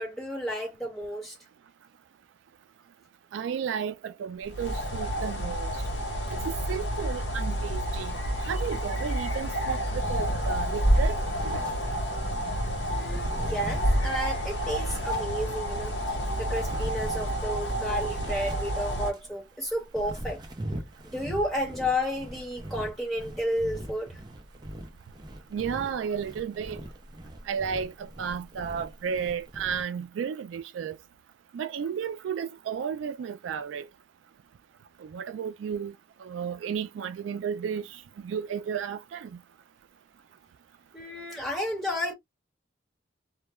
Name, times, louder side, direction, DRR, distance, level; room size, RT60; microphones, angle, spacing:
voice 1, 0.0-1.3 12.9-20.4 21.0-24.2 40.9-42.1, equal, ahead, 1.2 m, -32 dB
voice 2, 3.3-5.7 6.3-8.1 8.4-11.2 25.5-26.8 27.5-31.0 31.5-33.9 35.0-35.9 36.2-39.4, right 7 dB, 85° right, 0.3 m, -33 dB
sound 1, 4.4-19.1, equal, 65° left, 1.0 m, -29 dB
sound 2, 10.0-12.4 12.8-15.8 16.2-19.3 19.7-29.8, right 1 dB, 20° right, 0.5 m, -41 dB
2.2 x 2.1 x 3.0 m
head